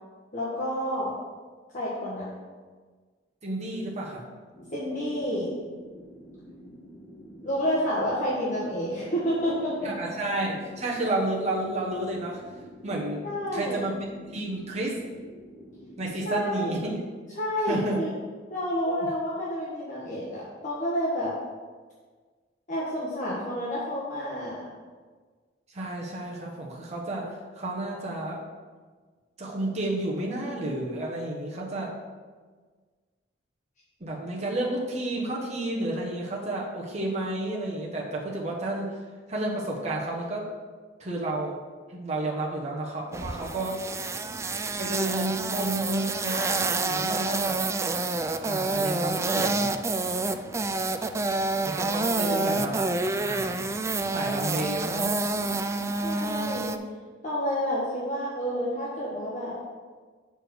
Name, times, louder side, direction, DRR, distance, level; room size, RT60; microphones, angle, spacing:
voice 1, 0.3-1.1 1.7-2.3 4.7-5.6 7.4-9.9 13.2-13.8 16.3-16.8 17.4-18.1 18.5-21.3 22.7-24.6 52.2-52.7 56.0-56.8 57.2-59.5, equal, 45° left, -7 dB, 1.5 m, -29 dB
voice 2, 3.4-4.2 9.8-12.4 12.8-13.2 13.5-14.1 14.3-15.0 16.0-17.0 17.7-18.0 19.0-19.1 25.7-28.4 29.4-31.9 34.0-39.0 39.3-40.5 41.0-41.6 41.9-43.8 44.8-47.6 48.4-49.7 51.6-52.9 53.2-53.7 54.1-55.2, right 2 dB, 40° right, -3 dB, 1.2 m, -31 dB
sound 1, 4.5-16.7, equal, 20° left, 1.0 m, -48 dB
sound 2, 43.1-56.8, right 3 dB, 15° right, 0.3 m, -28 dB
6.9 x 4.4 x 6.3 m, 1.5 s
head